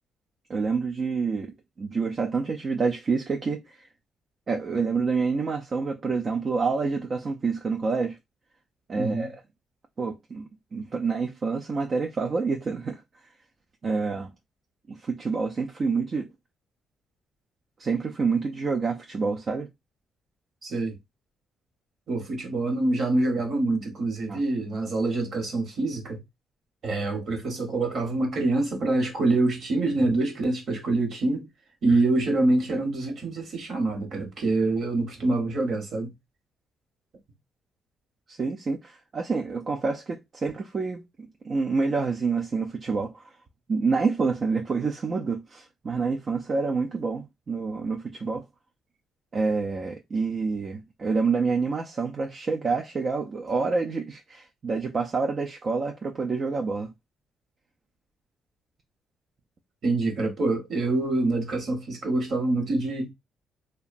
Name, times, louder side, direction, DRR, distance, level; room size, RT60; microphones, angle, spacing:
voice 1, 0.5-3.9 4.5-8.2 8.9-9.4 10.0-13.0 13.8-14.3 14.9-16.3 17.8-19.7 24.3-24.4 38.3-43.3 43.7-48.4 49.3-56.9, right 4 dB, 40° right, 0.4 m, -28 dB
voice 2, 8.9-9.3 20.6-21.0 22.1-26.2 26.8-31.5 31.8-36.1 59.8-63.1, right 2 dB, 60° right, 1.1 m, -25 dB
2.8 x 2.2 x 2.5 m
cardioid pair, 90°, 0 cm